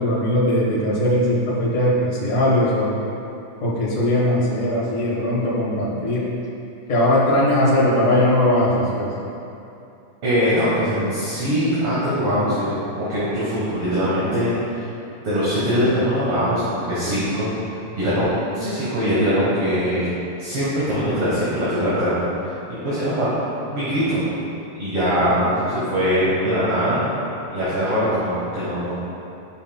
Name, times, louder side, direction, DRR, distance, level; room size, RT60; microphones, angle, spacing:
voice 1, 0.0-2.9 3.6-6.3 6.9-9.1 25.1-25.4, left 1 dB, 80° left, -8 dB, 0.6 m, -19 dB
voice 2, 10.2-14.9 15.2-17.5 17.9-20.1 20.4-22.5 22.8-23.4 23.7-24.2 24.8-27.1 27.5-28.9, equal, 55° right, -11 dB, 1.9 m, -22 dB
11.0 x 5.5 x 2.3 m, 2.7 s
omnidirectional pair, 3.9 m